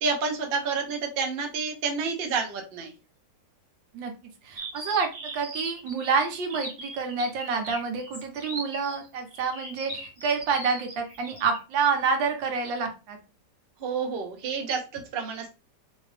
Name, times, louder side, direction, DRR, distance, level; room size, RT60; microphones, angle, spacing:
voice 1, 0.0-2.9 13.8-15.5, right 5 dB, 45° right, 2 dB, 0.7 m, -29 dB
voice 2, 4.4-13.2, right 5 dB, 85° right, 4 dB, 1.6 m, -28 dB
sound 1, 4.6-11.6, right 1 dB, 25° right, 1.3 m, -39 dB
4.1 x 2.7 x 3.3 m, 0.32 s
omnidirectional pair, 2.0 m